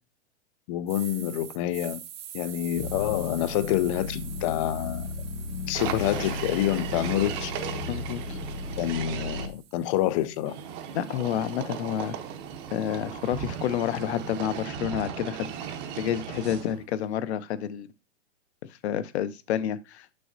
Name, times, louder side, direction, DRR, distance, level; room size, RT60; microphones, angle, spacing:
voice 1, 0.7-2.0 2.3-5.1 5.7-7.5 8.8-10.5, left 13 dB, 30° left, 0.4 m, -27 dB
sound 1, 0.9-8.9 9.4-13.6, right 10 dB, 70° right, 1.1 m, -47 dB
sound 2, 2.7-9.5, left 3 dB, 85° left, 1.8 m, -35 dB
sound 3, 5.7-9.5 10.5-16.8, right 8 dB, 30° right, 0.8 m, -36 dB
voice 2, 7.9-8.4 10.9-12.2 12.7-17.9 18.8-20.1, left 10 dB, 60° left, 0.7 m, -29 dB
6.9 x 6.4 x 2.6 m
hypercardioid pair, 130°, 36 cm